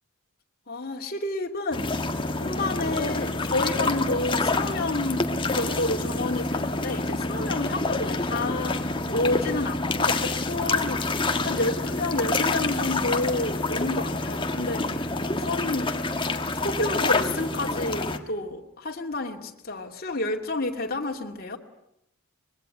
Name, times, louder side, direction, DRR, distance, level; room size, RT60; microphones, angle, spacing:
voice 1, 0.7-1.9 2.4-11.0 11.4-15.1 15.4-15.9 16.6-21.6, left 2 dB, 45° left, 1 dB, 2.6 m, -30 dB
sound 1, 1.7-18.2, left 2 dB, 25° left, 1.6 m, -27 dB
25.0 x 22.0 x 9.4 m, 0.79 s
head